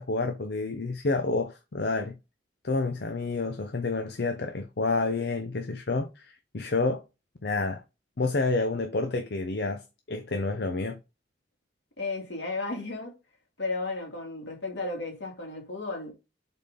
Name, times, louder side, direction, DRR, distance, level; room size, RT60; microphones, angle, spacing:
voice 1, 0.0-2.1 2.6-7.0 7.4-7.8 8.2-11.0, left 3 dB, 65° left, 0.7 m, -29 dB
voice 2, 12.0-13.2 13.6-16.1, left 3 dB, 80° left, 2.4 m, -34 dB
6.8 x 4.2 x 3.8 m
head